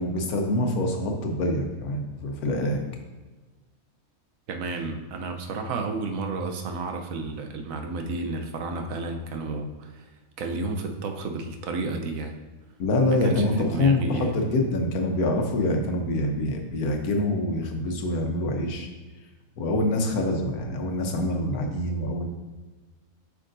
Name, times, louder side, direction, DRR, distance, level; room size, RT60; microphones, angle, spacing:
voice 1, 0.0-2.8 12.8-18.9 19.6-22.3, left 1 dB, 80° left, 3 dB, 1.4 m, -25 dB
voice 2, 4.5-10.1 10.4-12.4 13.2-14.4, right 3 dB, 70° right, 4 dB, 1.1 m, -31 dB
8.1 x 5.6 x 2.6 m, 1.3 s
omnidirectional pair, 1.5 m